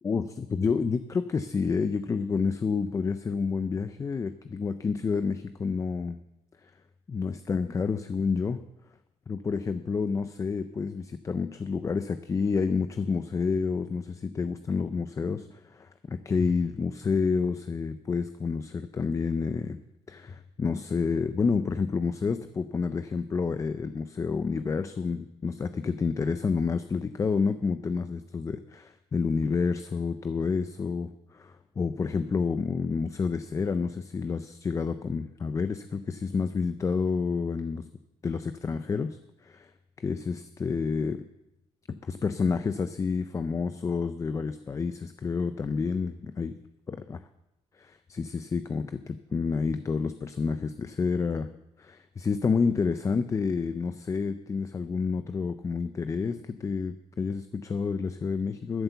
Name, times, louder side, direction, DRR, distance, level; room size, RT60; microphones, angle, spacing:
voice 1, 0.0-6.2 6.6-6.7 7.1-8.6 9.3-19.8 20.1-37.9 38.2-39.7 40.0-41.2 42.0-46.6 46.9-47.2 47.8-51.5 51.8-58.8, left 5 dB, 25° left, 11 dB, 0.5 m, -29 dB
12.5 x 7.9 x 6.9 m, 0.91 s
cardioid pair, 125°, 12 cm